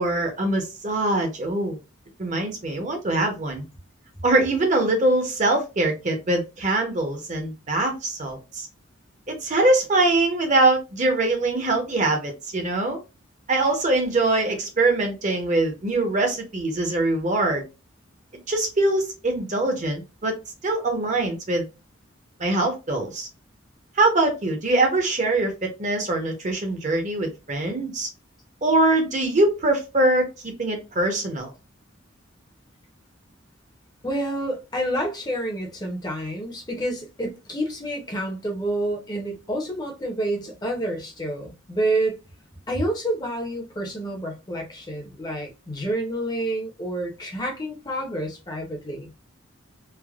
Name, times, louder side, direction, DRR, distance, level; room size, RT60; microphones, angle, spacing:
voice 1, 0.0-1.8 2.2-3.6 4.2-8.7 9.3-13.0 13.5-17.6 18.5-20.3 20.6-21.6 22.4-23.3 24.0-28.1 28.6-31.5, right 2 dB, 35° right, 0.6 m, -23 dB
voice 2, 34.0-42.2 42.7-49.1, right 1 dB, 20° left, 0.6 m, -28 dB
3.2 x 2.1 x 2.3 m
head